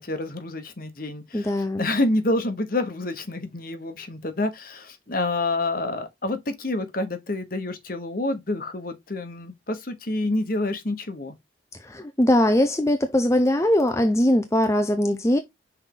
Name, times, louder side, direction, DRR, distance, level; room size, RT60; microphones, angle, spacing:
voice 1, 0.0-11.3, left 2 dB, 50° left, 1.1 m, -28 dB
voice 2, 1.3-1.9 11.8-15.4, left 1 dB, 15° left, 0.6 m, -21 dB
5.9 x 4.4 x 3.8 m
head